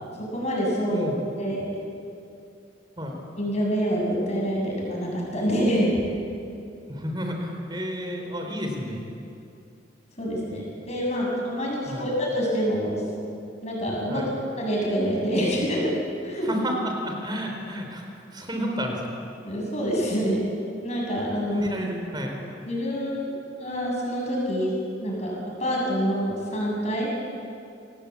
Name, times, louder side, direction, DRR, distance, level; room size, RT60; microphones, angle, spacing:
voice 1, 0.3-1.1 1.4-1.7 3.4-5.9 10.2-13.0 13.6-14.2 14.6-15.9 16.2-16.5 19.4-20.5 20.8-21.7 22.7-24.7 25.0-25.3 25.6-27.1, equal, 35° left, -2 dB, 7.7 m, -26 dB
voice 2, 0.9-1.2 3.0-3.2 6.9-9.1 11.9-12.1 14.1-14.3 16.4-18.0 18.3-19.0 21.5-22.4, equal, 20° right, 2 dB, 3.8 m, -31 dB
26.0 x 19.0 x 8.4 m, 2.6 s
head